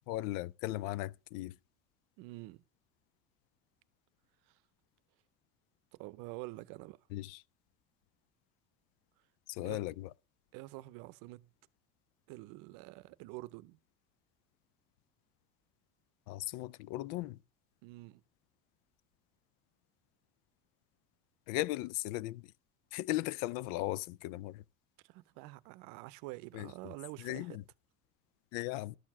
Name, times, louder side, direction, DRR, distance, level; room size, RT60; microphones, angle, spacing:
voice 1, 0.1-1.6 7.1-7.4 9.5-10.1 16.3-17.4 21.5-22.5 22.9-24.6 26.5-26.7 27.2-27.6 28.5-29.0, left 17 dB, 80° left, 0.5 m, -37 dB
voice 2, 2.2-2.6 4.5-4.6 5.9-7.0 9.6-9.8 10.5-11.5 12.3-13.8 17.8-18.2 25.0-27.6, right 20 dB, 80° right, 0.7 m, -47 dB
12.5 x 4.6 x 7.3 m
cardioid pair, 125°, 33 cm